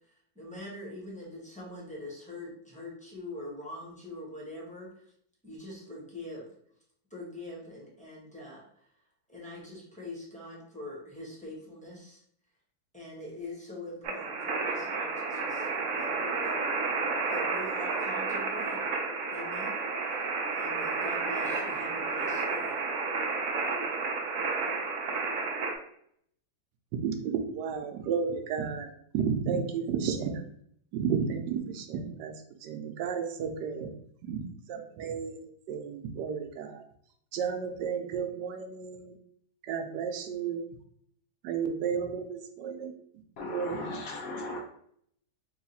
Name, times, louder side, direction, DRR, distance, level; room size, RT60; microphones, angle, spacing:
voice 1, 0.1-5.1 5.4-6.5 7.1-8.9 9.3-12.2 12.9-16.6 17.3-18.8 19.3-19.8 20.1-20.2 20.4-22.7, left 1 dB, 5° left, -5 dB, 0.9 m, -43 dB
sound 1, 14.0-25.8, right 4 dB, 65° right, 0.9 m, -31 dB
voice 2, 27.0-30.4 30.9-33.9 34.2-36.8 37.3-39.2 39.6-40.6 41.4-42.9 43.5-44.2, right 6 dB, 85° right, 5 dB, 1.3 m, -33 dB
voice 3, 43.4-44.6, left 1 dB, 65° left, 1 dB, 1.0 m, -36 dB
3.5 x 2.4 x 4.1 m, 0.67 s
omnidirectional pair, 1.8 m